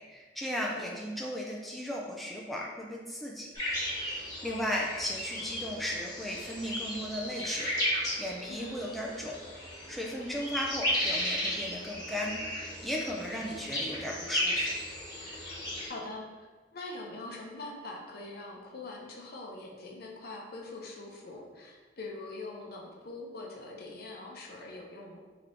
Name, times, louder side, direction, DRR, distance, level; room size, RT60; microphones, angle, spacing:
voice 1, 0.1-3.5 4.1-9.4 9.9-14.8, equal, ahead, -3 dB, 0.3 m, -36 dB
sound 1, 3.5-15.9, equal, 20° left, 1.2 m, -35 dB
voice 2, 4.4-4.7 8.5-8.8 13.2-13.7 15.9-16.5 16.7-25.2, left 2 dB, 60° left, -1 dB, 0.7 m, -43 dB
3.4 x 2.9 x 3.8 m, 1.4 s
head